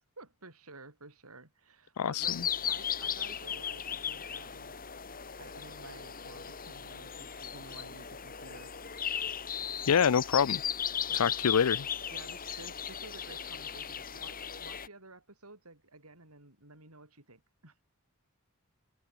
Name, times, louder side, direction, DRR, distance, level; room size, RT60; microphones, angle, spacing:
voice 1, 0.2-2.4 2.7-4.7 5.4-8.9 11.1-11.4 12.1-17.8, right 2 dB, 85° right, 7.2 m, -52 dB
voice 2, 2.0-2.5 9.9-10.6 11.1-11.9, left 7 dB, 80° left, 0.5 m, -26 dB
sound 1, 2.2-14.9, left 8 dB, 40° left, 4.4 m, -37 dB
head